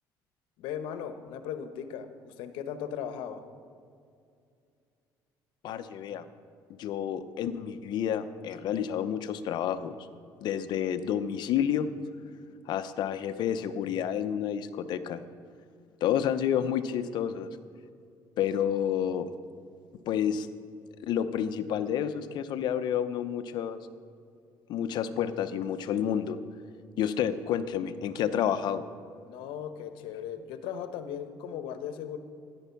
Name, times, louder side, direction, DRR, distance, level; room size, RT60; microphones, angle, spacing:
voice 1, 0.6-3.4 29.2-32.2, left 8 dB, 85° left, 9 dB, 1.0 m, -37 dB
voice 2, 5.6-6.2 6.8-10.0 10.4-11.9 12.7-15.2 16.0-17.5 18.4-19.3 20.1-20.5 21.1-23.9 24.7-26.4 27.0-28.8, left 9 dB, 65° left, 11 dB, 0.8 m, -29 dB
13.5 x 10.0 x 5.8 m, 2.4 s
cardioid pair, 115°, 8 cm